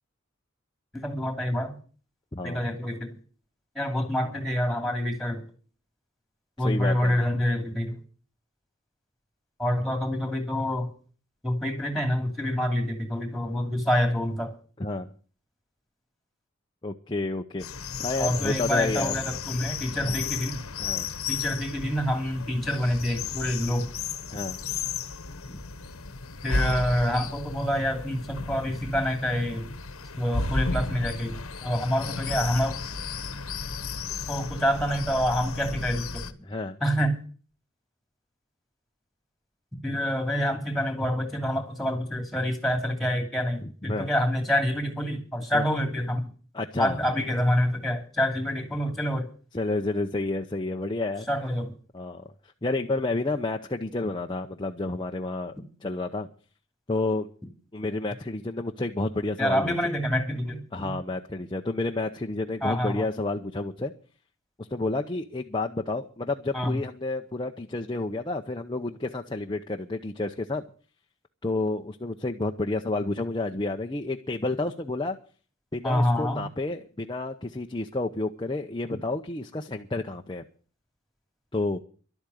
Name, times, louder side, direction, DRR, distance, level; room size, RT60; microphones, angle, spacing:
voice 1, 0.9-1.7 2.4-3.1 3.7-5.4 6.6-8.0 9.6-10.9 11.4-14.5 18.2-20.6 21.3-23.9 26.4-29.7 30.2-31.4 31.6-32.8 34.3-36.3 36.8-37.2 39.8-46.3 46.8-49.3 51.3-51.7 59.4-60.9 62.6-63.1 66.5-66.8 75.8-76.4, equal, ahead, 2.8 m, -27 dB
voice 2, 2.3-2.6 6.6-7.2 14.8-15.1 16.8-17.6 18.0-19.1 20.0-20.2 20.8-21.1 24.3-24.6 25.5-25.6 36.4-36.8 43.6-44.1 45.5-45.7 46.5-47.0 49.5-51.3 51.9-52.2 52.6-55.5 55.8-56.3 56.9-57.3 57.7-59.8 60.7-63.9 64.6-70.6 71.4-75.2 75.7-80.4 81.5-81.8, left 2 dB, 20° left, 0.7 m, -30 dB
sound 1, 17.6-36.3, left 4 dB, 85° left, 1.2 m, -34 dB
12.0 x 8.5 x 9.3 m
head